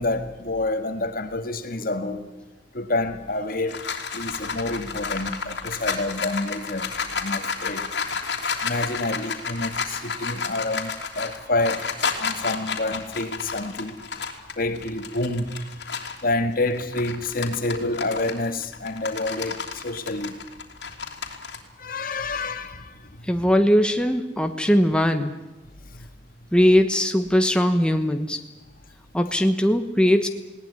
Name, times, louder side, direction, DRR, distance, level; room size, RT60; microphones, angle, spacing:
voice 1, 0.0-2.3 2.7-3.8 4.1-6.9 7.2-7.9 8.6-11.9 12.2-14.0 14.6-15.9 16.2-20.4 21.8-22.9 23.3-23.5 25.9-26.1, left 2 dB, 55° left, 1.9 m, -28 dB
sound 1, 3.3-16.2 16.7-21.6, left 5 dB, 75° left, 3.1 m, -31 dB
voice 2, 23.3-25.3 26.5-28.4 29.1-30.3, equal, 5° left, 1.2 m, -20 dB
20.0 x 18.5 x 9.8 m
head